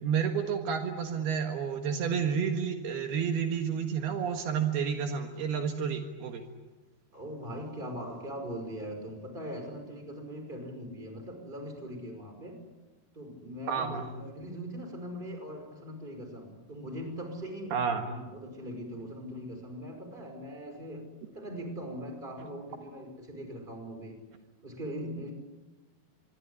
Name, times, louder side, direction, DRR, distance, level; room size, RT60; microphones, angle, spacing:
voice 1, 0.0-6.4 13.7-14.0 17.7-18.0, right 7 dB, 70° right, 5 dB, 3.5 m, -30 dB
voice 2, 7.1-12.6 13.1-17.8 18.0-24.2 24.6-25.3, equal, 10° right, 5 dB, 5.4 m, -41 dB
25.5 x 23.5 x 9.8 m, 1.1 s
omnidirectional pair, 4.7 m